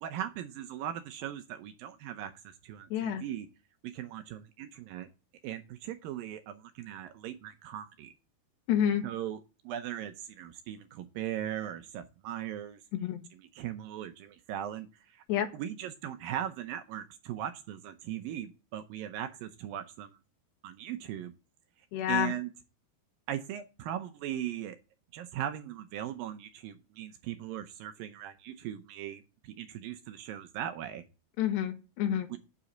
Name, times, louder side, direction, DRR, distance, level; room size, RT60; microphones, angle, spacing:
voice 1, 0.0-3.5 3.8-5.1 5.4-8.1 9.0-9.4 9.6-12.8 13.3-15.2 15.5-20.2 20.6-21.3 22.1-22.5 23.3-24.8 25.1-31.0 32.3-32.4, right 11 dB, 75° right, 9 dB, 2.1 m, -39 dB
voice 2, 2.9-3.2 8.7-9.0 12.9-13.2 15.3-15.5 21.9-22.3 31.4-32.3, left 10 dB, 90° left, 5 dB, 3.6 m, -29 dB
8.8 x 8.2 x 3.9 m, 0.30 s
omnidirectional pair, 4.8 m